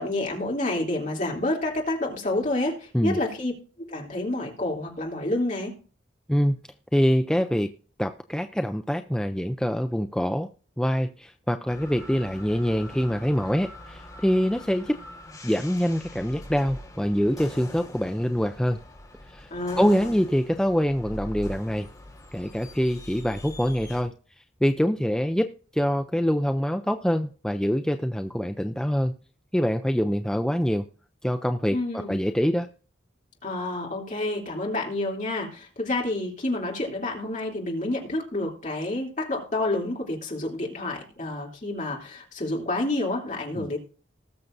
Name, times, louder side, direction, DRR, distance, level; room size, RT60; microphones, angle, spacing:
voice 1, 0.0-3.5 3.8-5.7 19.5-20.1 31.7-32.1 33.4-43.8, left 2 dB, 40° left, -1 dB, 3.0 m, -29 dB
voice 2, 6.3-6.6 6.9-7.7 8.0-10.5 10.8-15.0 15.4-18.8 19.3-19.5 19.8-21.9 22.3-29.1 29.5-30.9 31.2-31.8 32.1-32.7 43.6-43.7, equal, 5° left, 6 dB, 0.4 m, -25 dB
sound 1, 11.7-24.0, left 1 dB, 20° left, 3.5 m, -43 dB
19.5 x 6.7 x 2.6 m, 0.40 s
head